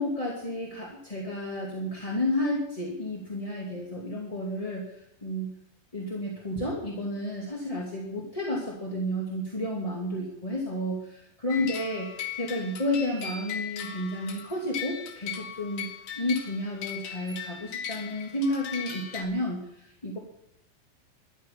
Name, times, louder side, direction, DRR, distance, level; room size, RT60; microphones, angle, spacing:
voice 1, 0.0-5.5 5.9-15.9 16.2-20.2, left 1 dB, 10° left, -3 dB, 1.9 m, -31 dB
sound 1, 11.5-19.2, left 7 dB, 70° left, 3.6 m, -38 dB
13.0 x 10.0 x 9.9 m, 0.77 s
omnidirectional pair, 4.0 m